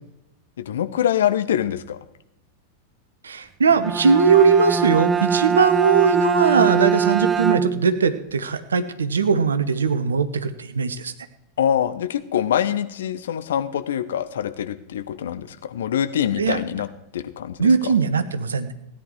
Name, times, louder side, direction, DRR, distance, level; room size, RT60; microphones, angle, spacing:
voice 1, 0.6-2.0 11.6-16.9 17.1-17.9, left 9 dB, 60° left, 12 dB, 0.9 m, -24 dB
voice 2, 3.2-11.1 16.4-16.6 17.6-18.7, right 5 dB, 70° right, 12 dB, 1.0 m, -19 dB
Bowed string instrument, 3.7-8.0, right 6 dB, 15° right, 0.5 m, -22 dB
16.5 x 10.0 x 4.8 m, 0.88 s
figure-of-eight pair, 90°, 0 cm